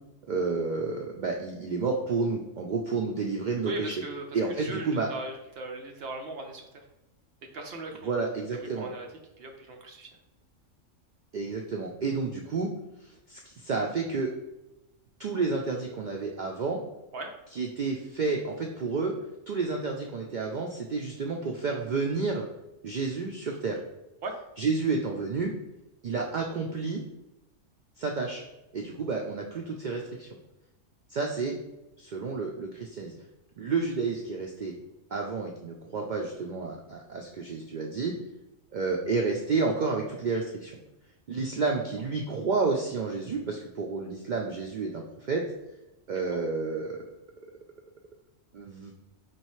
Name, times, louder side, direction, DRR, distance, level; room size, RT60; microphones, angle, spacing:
voice 1, 0.3-3.9 4.3-5.1 8.0-8.9 11.3-12.7 13.0-14.3 15.2-16.8 17.5-19.1 19.5-22.4 22.8-23.8 24.6-25.5 26.0-27.0 28.0-28.4 28.7-30.3 31.1-31.6 32.0-33.1 33.6-34.7 35.1-38.2 38.7-40.7 41.3-45.4 46.1-47.0 48.5-48.9, right 4 dB, 80° right, 1 dB, 0.4 m, -30 dB
voice 2, 3.6-6.8 7.5-8.1 8.8-9.1 9.4-10.1 17.1-17.3 24.2-24.3 46.3-46.4, right 2 dB, 55° right, 3 dB, 0.8 m, -38 dB
4.5 x 3.1 x 3.0 m, 0.94 s
omnidirectional pair, 1.3 m